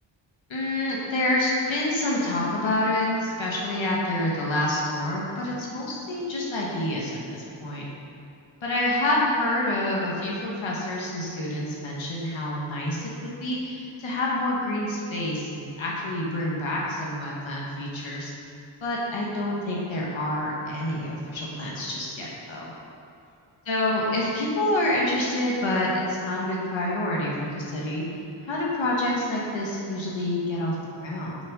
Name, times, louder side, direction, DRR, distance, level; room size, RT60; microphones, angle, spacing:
voice 1, 0.5-7.9 8.6-18.3 18.8-22.7 23.7-28.0 28.4-31.4, left 1 dB, 85° left, -4 dB, 1.2 m, -27 dB
5.5 x 5.2 x 5.3 m, 2.7 s
cardioid pair, 45°, 46 cm